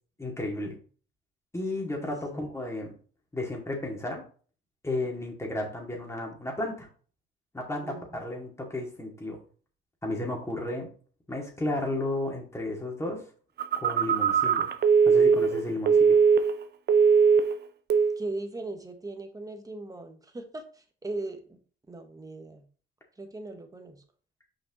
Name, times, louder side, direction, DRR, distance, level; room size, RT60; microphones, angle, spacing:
voice 1, 0.2-0.8 1.5-2.9 3.3-4.2 4.8-6.9 7.5-9.4 10.0-10.9 11.3-13.2 13.8-14.7 15.1-16.2, left 2 dB, 15° left, 0 dB, 2.3 m, -33 dB
voice 2, 7.8-8.2 18.2-21.6 21.9-22.7 23.2-24.0, right 2 dB, 15° right, 6 dB, 1.2 m, -39 dB
Telephone, 13.6-16.6 16.9-17.6 17.9-18.2, right 6 dB, 55° right, 0.7 m, -21 dB
6.2 x 5.2 x 3.1 m, 0.41 s
cardioid pair, 90°, 20 cm